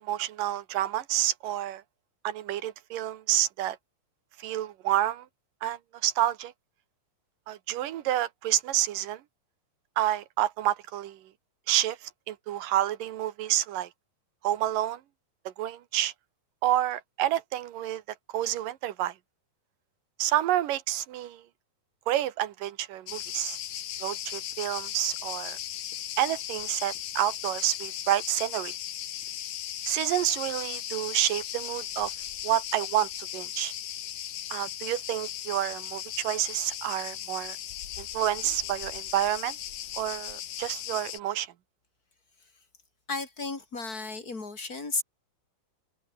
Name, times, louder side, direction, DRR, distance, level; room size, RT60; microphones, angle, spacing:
voice 1, 0.0-1.8 2.2-3.8 4.4-5.3 5.6-6.5 7.5-9.2 10.0-11.2 11.7-13.9 14.4-15.0 15.6-16.1 16.6-18.0 18.3-19.1 20.2-21.4 22.1-23.6 24.0-25.6 26.2-28.7 29.9-32.1 32.4-33.7 34.5-37.6 38.0-39.6 40.0-41.5, right 13 dB, 75° right, 2.9 m, -29 dB
Cricket, 23.1-41.2, left 11 dB, 70° left, 3.0 m, -37 dB
voice 2, 43.1-45.0, left 3 dB, 25° left, 4.0 m, -33 dB
omnidirectional pair, 3.9 m